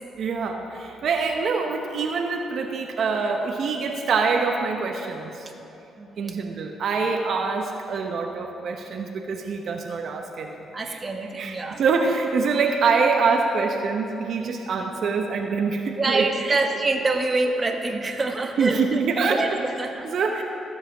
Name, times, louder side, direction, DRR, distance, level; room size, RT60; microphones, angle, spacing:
voice 1, 0.2-5.5 6.2-10.6 10.8-11.0 11.3-16.6 18.6-19.5 20.0-20.4, right 4 dB, 60° right, 2 dB, 0.9 m, -25 dB
voice 2, 6.0-6.4 10.7-11.8 16.0-19.0 19.3-20.1, right 3 dB, 25° right, 3 dB, 1.3 m, -26 dB
15.0 x 7.5 x 6.1 m, 3.0 s
cardioid pair, 90°, 0 cm